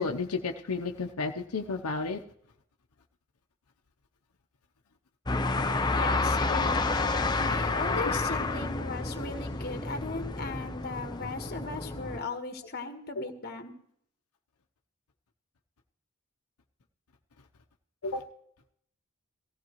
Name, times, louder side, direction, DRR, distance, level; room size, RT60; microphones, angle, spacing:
voice 1, 0.0-2.2 6.5-6.7 18.0-18.2, left 4 dB, 85° left, 3 dB, 0.8 m, -32 dB
sound 1, 5.3-12.2, left 3 dB, 20° left, 0.7 m, -29 dB
voice 2, 5.4-7.0 7.4-13.7, left 3 dB, 45° left, 6 dB, 1.5 m, -38 dB
18.0 x 15.0 x 3.1 m, 0.69 s
head